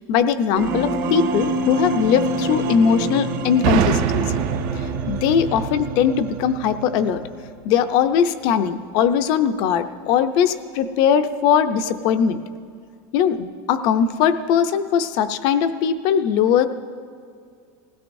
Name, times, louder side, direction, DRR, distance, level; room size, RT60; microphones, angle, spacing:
voice 1, 0.1-4.4 4.7-7.2 7.6-12.4 13.1-16.7, left 8 dB, 45° left, 10 dB, 0.6 m, -20 dB
sound 1, 0.6-7.6, right 2 dB, 85° right, 1.8 m, -27 dB
sound 2, 3.6-7.3, right 9 dB, 45° right, 0.5 m, -25 dB
20.0 x 16.0 x 2.7 m, 2.2 s
supercardioid pair, 175°, 10 cm